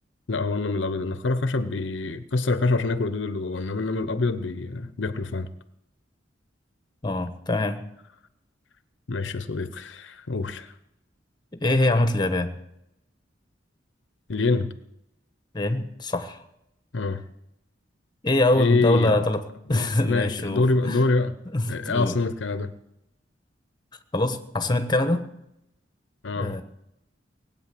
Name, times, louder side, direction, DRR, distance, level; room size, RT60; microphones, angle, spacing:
voice 1, 0.3-5.5 9.1-10.7 14.3-14.7 16.9-17.2 18.5-19.3 19.7-21.3 21.7-22.7 26.2-26.6, left 3 dB, 75° left, 13 dB, 0.8 m, -26 dB
voice 2, 7.0-7.8 11.5-12.5 15.5-16.4 18.2-19.4 19.7-21.0 21.4-22.2 24.1-25.3 26.4-26.6, left 2 dB, 25° left, 8 dB, 1.3 m, -24 dB
19.0 x 8.9 x 7.7 m, 0.83 s
head